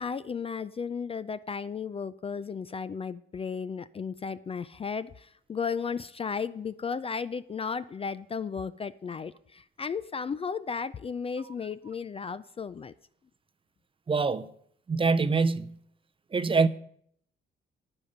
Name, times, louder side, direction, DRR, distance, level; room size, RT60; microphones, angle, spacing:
voice 1, 0.0-12.9, left 6 dB, 30° left, 0.4 m, -34 dB
voice 2, 14.1-14.5 14.9-15.8 16.3-16.7, right 4 dB, 25° right, 0.6 m, -24 dB
11.0 x 8.6 x 5.4 m
cardioid pair, 90°, 20 cm